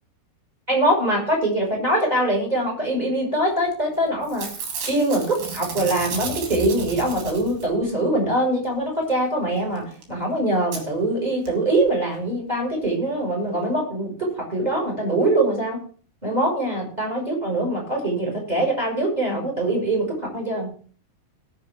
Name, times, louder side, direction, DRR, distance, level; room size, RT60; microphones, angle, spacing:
voice 1, 0.7-4.5 4.9-15.8 16.2-20.7, right 1 dB, 10° right, 0 dB, 5.5 m, -23 dB
Packing tape duct tape / Tearing, 3.7-4.0 4.2-7.8 9.8-9.9 10.0-10.1 10.7-10.8 11.5-11.6 11.8-11.9, right 5 dB, 70° right, 5.2 m, -33 dB
20.0 x 7.5 x 3.7 m, 0.43 s
omnidirectional pair, 5.3 m